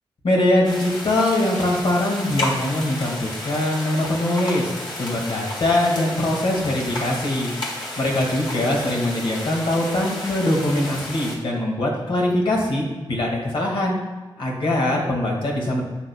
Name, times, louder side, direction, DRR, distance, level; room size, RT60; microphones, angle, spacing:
voice 1, 0.2-7.5 8.0-14.0 14.4-15.8, left 1 dB, 80° left, -1 dB, 2.2 m, -22 dB
sound 1, 0.6-11.4, left 1 dB, 60° left, 1.9 m, -32 dB
11.0 x 7.8 x 2.4 m, 1.3 s
wide cardioid pair, 90°, 9 cm